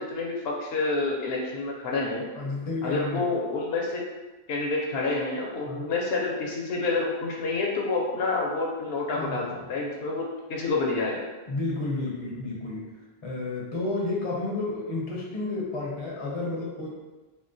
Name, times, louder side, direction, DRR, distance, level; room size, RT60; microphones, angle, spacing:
voice 1, 0.0-2.2 2.8-4.0 4.5-11.2, left 3 dB, 75° left, -2 dB, 0.8 m, -28 dB
voice 2, 2.4-3.3 5.7-5.9 9.1-9.6 11.5-12.9 13.2-16.9, left 2 dB, 35° left, -3 dB, 0.5 m, -31 dB
3.6 x 2.0 x 2.6 m, 1.2 s
omnidirectional pair, 1.1 m